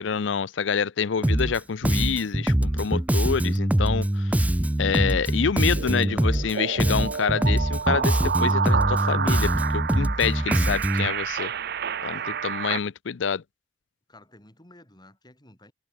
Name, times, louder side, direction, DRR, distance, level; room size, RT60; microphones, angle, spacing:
voice 1, 0.0-4.5 4.8-11.5 12.0-13.4, left 6 dB, 80° left, 0.5 m, -27 dB
Bass guitar, 1.2-1.6 1.8-6.5 6.8-11.1, right 1 dB, 10° right, 0.5 m, -23 dB
sound 1, 5.8-12.8, right 6 dB, 60° right, 0.7 m, -29 dB
voice 2, 10.0-10.9 12.1-12.7 14.1-15.7, left 1 dB, 25° left, 6.7 m, -54 dB
head